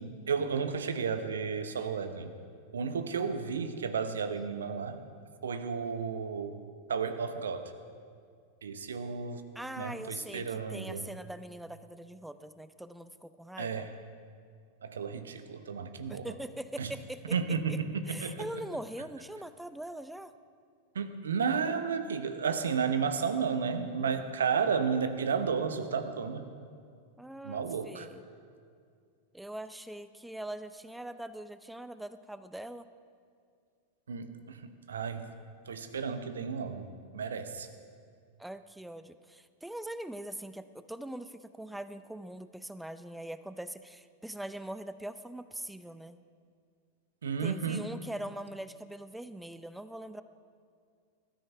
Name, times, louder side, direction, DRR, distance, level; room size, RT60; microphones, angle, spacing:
voice 1, 0.0-2.3 2.7-5.0 5.4-6.6 6.9-7.7 8.6-9.4 9.8-11.0 13.6-13.9 14.8-16.3 16.8-16.9 17.3-18.5 20.9-26.5 27.4-28.1 34.1-35.3 35.7-36.9 37.1-37.7 47.2-47.9, right 6 dB, 75° right, 9 dB, 1.0 m, -32 dB
voice 2, 9.5-13.9 16.1-17.4 17.7-17.8 18.1-20.3 27.2-28.2 29.3-32.9 38.4-46.2 47.4-50.2, right 1 dB, 5° right, 12 dB, 0.6 m, -42 dB
19.0 x 13.0 x 3.5 m, 2.2 s
figure-of-eight pair, 90°, 0 cm